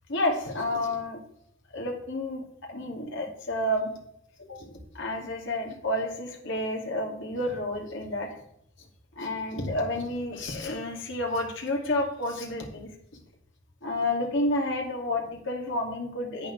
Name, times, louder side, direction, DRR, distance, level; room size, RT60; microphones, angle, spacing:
voice 1, 0.1-1.2 1.7-3.9 4.5-8.4 9.2-12.9 13.8-16.5, left 1 dB, 65° left, 1 dB, 2.5 m, -30 dB
10.5 x 8.7 x 3.4 m, 0.73 s
head